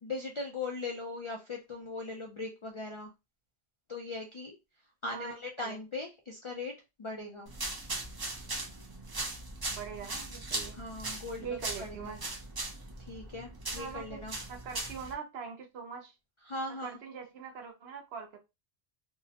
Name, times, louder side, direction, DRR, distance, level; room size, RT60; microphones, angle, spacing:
voice 1, 0.0-3.1 3.9-4.6 5.0-6.7 7.0-7.5 10.7-11.5 11.8-12.2 13.0-14.4 16.4-17.0, left 3 dB, 55° left, 0.3 m, -39 dB
sound 1, 7.5-15.1, right 2 dB, 30° right, 0.4 m, -39 dB
voice 2, 9.7-10.8 11.4-12.2 13.8-16.1 16.8-18.4, right 6 dB, 75° right, 0.9 m, -42 dB
2.6 x 2.0 x 2.7 m
omnidirectional pair, 1.1 m